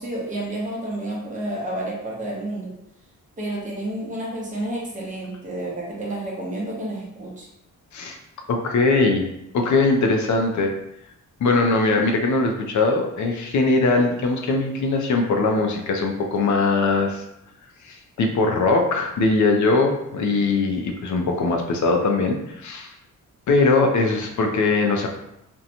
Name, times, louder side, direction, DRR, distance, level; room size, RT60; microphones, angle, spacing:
voice 1, 0.0-2.7 3.4-7.5, right 1 dB, 25° right, -4 dB, 0.7 m, -30 dB
voice 2, 8.5-9.2 9.5-10.7 11.4-17.2 17.8-22.9 23.5-25.1, left 3 dB, 65° left, 3 dB, 0.5 m, -21 dB
2.6 x 2.2 x 2.8 m, 0.81 s
wide cardioid pair, 150°, 32 cm